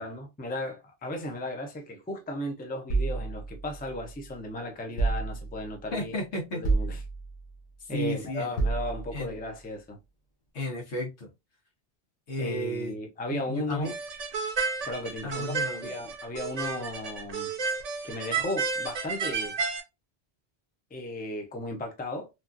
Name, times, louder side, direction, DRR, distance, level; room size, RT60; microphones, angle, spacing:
voice 1, 0.0-6.1 6.5-7.0 7.9-10.0 12.4-13.9 14.9-15.5 15.8-17.5 18.0-19.5 20.9-22.3, left 1 dB, 15° left, 0.4 m, -35 dB
sound 1, 2.9-4.3 5.0-5.8 6.6-7.5 8.6-9.4, right 3 dB, 55° left, 0.7 m, -30 dB
voice 2, 5.9-6.6 7.8-8.6 9.1-9.3 10.5-11.3 12.3-12.9 13.3-13.9 15.2-15.9, left 1 dB, 90° left, 1.3 m, -33 dB
sound 2, 13.8-19.8, right 4 dB, 50° right, 0.5 m, -32 dB
3.0 x 2.3 x 2.4 m
omnidirectional pair, 1.1 m